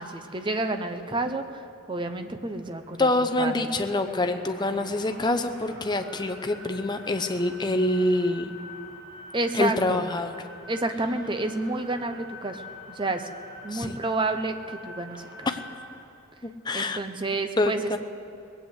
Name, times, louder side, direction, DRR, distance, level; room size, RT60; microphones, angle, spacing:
voice 1, 0.0-3.1 3.4-3.6 9.3-10.0 10.7-12.6 12.9-13.3 13.6-15.5 16.7-18.0, right 2 dB, 25° right, 8 dB, 0.7 m, -30 dB
sound 1, 2.4-16.0, left 1 dB, 55° right, 3.9 m, -46 dB
voice 2, 3.0-8.6 9.5-10.3 13.7-14.0 15.5-15.6 16.4-17.0 17.6-18.0, left 2 dB, 20° left, 7 dB, 0.7 m, -26 dB
19.0 x 8.0 x 8.1 m, 2.8 s
head